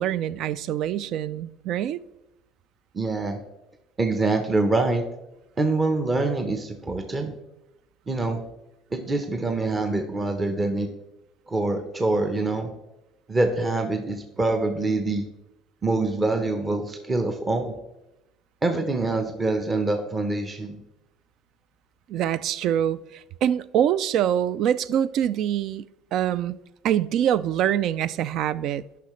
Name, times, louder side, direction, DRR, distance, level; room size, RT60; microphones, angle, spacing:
voice 1, 0.0-2.0 22.1-26.5 26.8-28.8, right 10 dB, 60° right, 0.3 m, -25 dB
voice 2, 2.9-3.4 4.0-5.0 5.6-7.3 8.1-8.4 8.9-10.9 11.5-12.7 13.3-15.2 15.8-17.7 18.6-20.8, right 2 dB, 25° right, 0.8 m, -25 dB
10.0 x 5.7 x 3.1 m
supercardioid pair, 95°, 0 cm